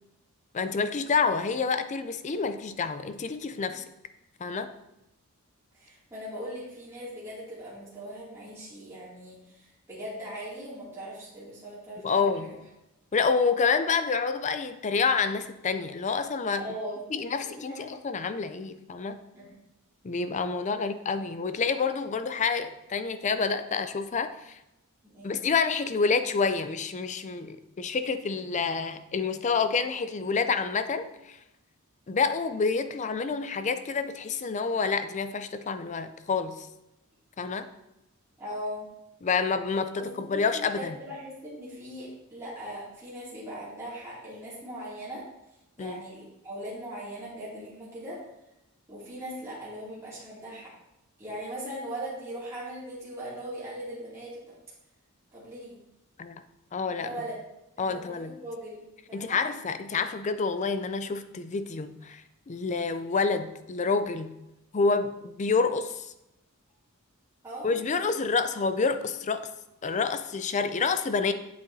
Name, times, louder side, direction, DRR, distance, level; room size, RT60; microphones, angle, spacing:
voice 1, 0.5-3.8 4.4-4.7 12.0-12.5 13.1-16.7 17.1-19.2 20.0-24.6 25.2-31.4 32.1-36.7 37.4-37.7 39.2-41.0 45.8-46.0 56.2-56.3 56.7-57.1 57.8-58.4 59.1-62.2 62.5-64.3 64.7-66.1 67.6-69.5 69.8-71.3, left 5 dB, 35° left, 11 dB, 0.4 m, -28 dB
voice 2, 5.7-12.5 16.6-17.9 19.3-19.6 20.8-20.9 25.0-25.3 38.4-38.9 40.0-45.2 45.8-48.2 48.9-50.7 51.2-54.5 55.3-55.8 57.0-57.4 57.8-59.4 67.4-67.8, equal, 15° right, -10 dB, 2.5 m, -40 dB
8.4 x 7.7 x 2.7 m, 0.89 s
head